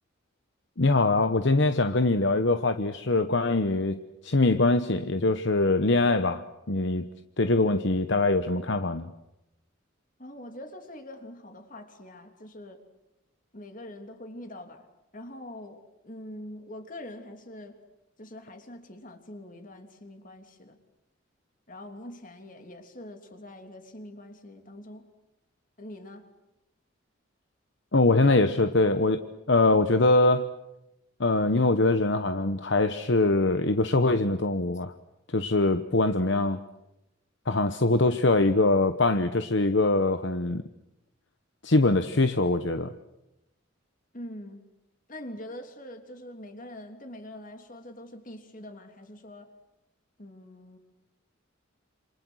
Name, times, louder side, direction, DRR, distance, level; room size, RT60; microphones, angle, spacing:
voice 1, 0.8-7.1 7.4-9.1 27.9-29.2 29.5-30.5 31.2-34.9 35.3-36.6 37.5-40.6 41.6-42.9, left 2 dB, 60° left, 9 dB, 1.0 m, -23 dB
voice 2, 10.2-12.8 13.5-14.9 15.1-17.8 18.2-20.8 21.7-25.1 25.8-26.3 44.1-44.7 45.1-49.5 50.2-50.8, left 1 dB, 40° left, 5 dB, 3.2 m, -44 dB
28.0 x 27.0 x 6.4 m, 0.89 s
head